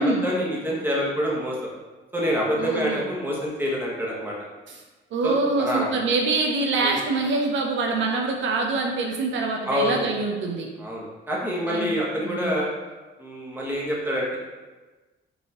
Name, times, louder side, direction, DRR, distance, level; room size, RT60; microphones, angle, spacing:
voice 1, 0.0-1.6 2.1-4.3 5.2-5.9 6.8-7.0 9.6-10.1 10.8-12.7 13.2-14.4, equal, 10° right, -4 dB, 1.2 m, -26 dB
voice 2, 2.6-3.0 4.7-4.8 5.1-10.7 11.7-11.9 12.2-12.6, right 3 dB, 70° right, 1 dB, 0.6 m, -25 dB
5.3 x 2.8 x 2.9 m, 1.2 s
cardioid pair, 90°, 20 cm